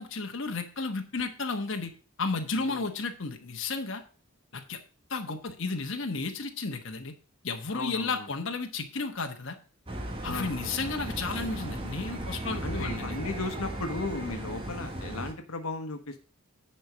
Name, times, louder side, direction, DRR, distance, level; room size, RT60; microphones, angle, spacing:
voice 1, 0.0-1.9 2.2-4.0 4.5-4.8 5.1-7.1 7.4-9.6 10.2-13.2, left 3 dB, 55° left, 4 dB, 1.2 m, -33 dB
voice 2, 2.5-2.8 7.7-8.3 10.2-10.5 12.6-16.2, left 3 dB, 75° left, 7 dB, 1.2 m, -35 dB
sound 1, 9.9-15.3, right 1 dB, 25° right, 1.3 m, -36 dB
10.0 x 4.4 x 6.2 m, 0.38 s
head